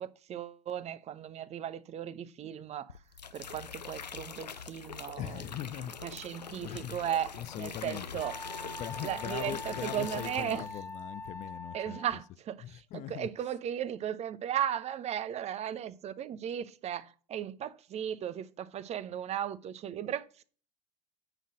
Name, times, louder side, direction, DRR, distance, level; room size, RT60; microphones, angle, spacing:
voice 1, 0.0-3.0 3.3-5.5 6.0-8.4 9.0-10.6 11.7-20.4, right 10 dB, 30° right, 0.9 m, -36 dB
sound 1, 2.9-10.9 11.2-11.6, left 6 dB, 90° left, 0.5 m, -44 dB
voice 2, 5.2-5.9 6.5-7.0 7.3-8.2 8.7-13.6, left 12 dB, 35° left, 0.6 m, -41 dB
Wind instrument woodwind instrument, 8.2-12.3, left 2 dB, 15° left, 1.3 m, -43 dB
10.0 x 4.1 x 6.3 m
figure-of-eight pair, 80°, 21 cm